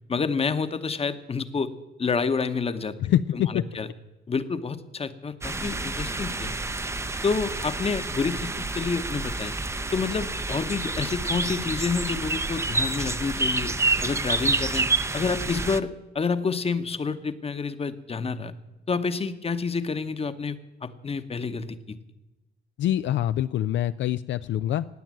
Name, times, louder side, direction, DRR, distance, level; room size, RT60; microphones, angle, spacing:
voice 1, 0.1-1.7 2.0-3.0 3.3-3.9 4.3-6.5 7.2-9.5 9.9-14.9 15.1-18.5 18.9-22.0, left 5 dB, 30° left, 11 dB, 1.0 m, -29 dB
voice 2, 3.0-3.6 22.8-24.9, left 12 dB, 70° left, 12 dB, 0.4 m, -25 dB
sound 1, 5.4-15.8, right 3 dB, 15° right, 0.6 m, -28 dB
16.5 x 9.3 x 7.6 m, 1.0 s
cardioid pair, 90°, 20 cm